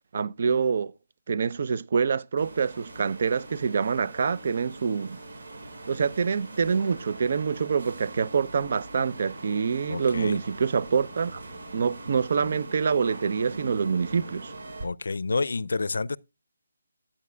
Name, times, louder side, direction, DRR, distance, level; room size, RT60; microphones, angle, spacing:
voice 1, 0.1-0.9 1.3-5.2 5.9-11.4 11.7-14.5, right 6 dB, 55° right, 0.6 m, -26 dB
sound 1, 2.4-14.8, right 2 dB, 70° right, 4.8 m, -42 dB
voice 2, 9.9-10.4 14.8-16.2, left 3 dB, 80° left, 0.4 m, -29 dB
11.5 x 8.5 x 2.2 m
hypercardioid pair, 160°, 0 cm